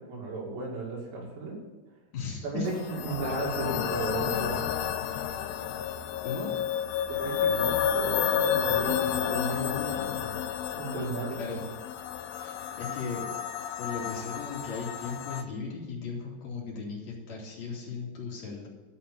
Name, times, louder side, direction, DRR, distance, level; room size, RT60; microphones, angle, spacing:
voice 1, 0.0-1.6 2.4-4.7 7.1-10.1 10.8-11.6 12.4-12.5, right 3 dB, 80° right, -1 dB, 4.8 m, -35 dB
voice 2, 2.1-2.7 6.2-6.6 9.4-10.4 11.4-11.7 12.4-13.3 13.8-18.7, left 5 dB, 45° left, -3 dB, 3.5 m, -37 dB
sound 1, 2.7-15.4, left 9 dB, 85° left, 2.7 m, -31 dB
12.5 x 5.7 x 8.5 m, 1.2 s
omnidirectional pair, 4.9 m